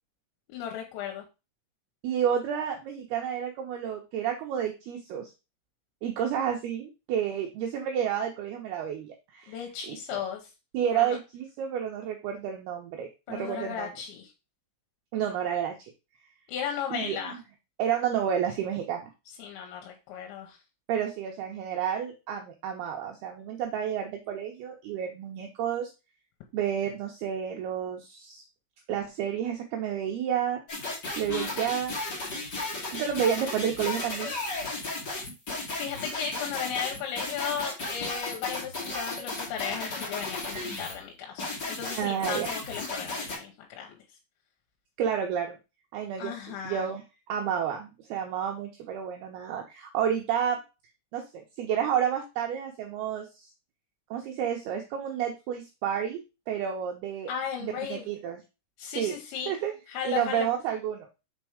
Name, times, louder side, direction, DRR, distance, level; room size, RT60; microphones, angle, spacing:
voice 1, 0.5-1.2 9.5-10.5 10.9-11.2 13.3-14.3 16.5-17.4 19.4-20.6 35.8-44.0 46.2-46.9 57.3-58.1 58.8-59.5 59.9-60.5, left 8 dB, 85° left, 1 dB, 3.2 m, -35 dB
voice 2, 2.0-5.3 6.0-10.2 10.7-13.9 15.1-15.9 16.9-17.2 17.8-19.1 20.9-25.9 26.5-28.4 28.9-30.6 31.2-32.0 32.4-32.5 32.9-34.3 40.5-40.6 42.0-42.5 45.0-45.6 45.9-46.4 46.6-47.0 47.3-50.6 51.1-53.5 54.1-56.2 56.5-57.3 57.6-58.4 58.9-59.2 59.5-59.7 60.0-61.1, right 9 dB, 80° right, 2 dB, 2.4 m, -30 dB
sound 1, 30.7-41.0 41.4-43.4, left 2 dB, 35° left, 1.7 m, -34 dB
6.2 x 4.5 x 4.8 m, 0.28 s
omnidirectional pair, 5.2 m